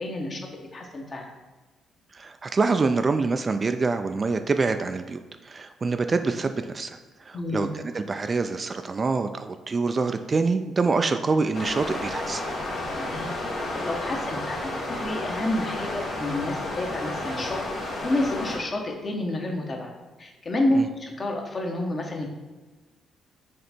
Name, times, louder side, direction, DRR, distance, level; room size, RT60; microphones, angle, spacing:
voice 1, 0.0-1.3 7.3-7.7 12.9-14.7 15.0-17.6 18.0-19.9 20.2-22.3, left 1 dB, 40° left, 1 dB, 1.1 m, -29 dB
voice 2, 2.1-12.4 20.7-20.9, right 4 dB, 35° right, 8 dB, 0.3 m, -26 dB
sound 1, 11.5-18.6, left 1 dB, 70° left, 1.7 m, -32 dB
6.6 x 3.4 x 4.3 m, 1.2 s
cardioid pair, 90°, 0 cm